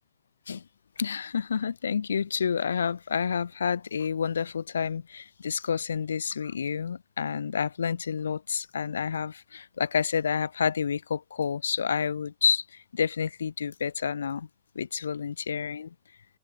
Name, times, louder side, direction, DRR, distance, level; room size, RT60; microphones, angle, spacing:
voice 1, 1.0-14.5 14.7-15.9, left 6 dB, 70° left, 2.3 m, -29 dB
open air
figure-of-eight pair, 90°, 0 cm